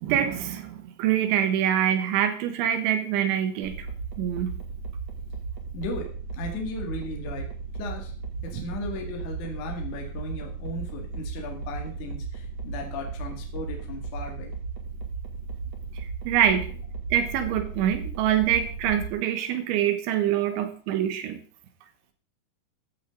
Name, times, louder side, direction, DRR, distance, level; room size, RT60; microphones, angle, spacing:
voice 1, 0.0-3.9 4.2-4.6 8.5-8.6 16.3-16.7 17.1-21.4, right 10 dB, 85° right, 8 dB, 3.6 m, -25 dB
sound 1, 3.6-19.1, right 5 dB, 40° right, 3.2 m, -35 dB
voice 2, 5.7-7.5 7.8-8.1 8.4-14.5, left 2 dB, 50° left, 2 dB, 3.2 m, -36 dB
14.5 x 11.5 x 3.9 m, 0.43 s
omnidirectional pair, 5.2 m